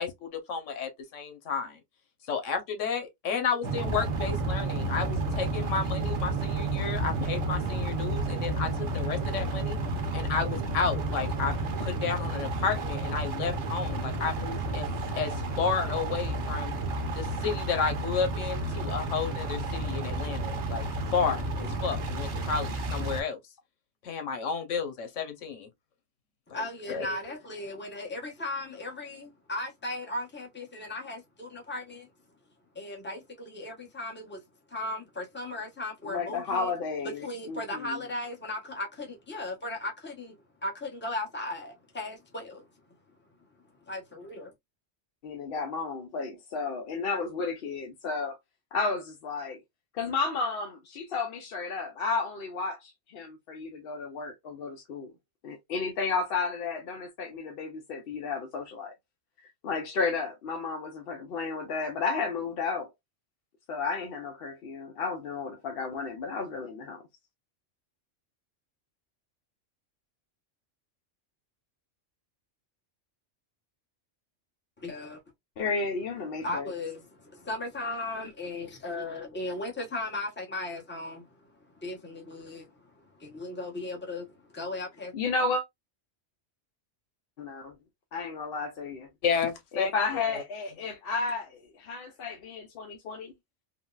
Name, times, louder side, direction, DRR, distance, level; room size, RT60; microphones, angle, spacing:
voice 1, 0.0-1.8 2.3-9.8 10.1-11.5 11.8-14.9 15.2-16.7 17.1-20.8 21.1-23.4 24.0-25.7 26.5-26.6 26.9-27.2 89.2-89.9 90.3-90.4, left 5 dB, 90° left, 1.2 m, -32 dB
sound 1, 3.6-23.2, right 2 dB, 70° right, 1.0 m, -31 dB
voice 2, 26.5-32.1 32.7-34.4 34.7-36.7 37.2-40.4 40.6-42.7 43.9-44.5 74.8-75.2 76.4-81.3 81.7-82.7 82.9-85.1, left 2 dB, 10° left, 0.8 m, -37 dB
voice 3, 36.1-38.0 45.2-48.4 48.7-49.6 49.9-55.1 55.4-58.9 59.6-62.9 63.7-67.0 75.6-76.7 85.1-85.6 87.4-87.7 88.1-89.1 89.7-93.3, left 4 dB, 60° left, 0.7 m, -32 dB
3.7 x 2.1 x 2.3 m
omnidirectional pair, 1.3 m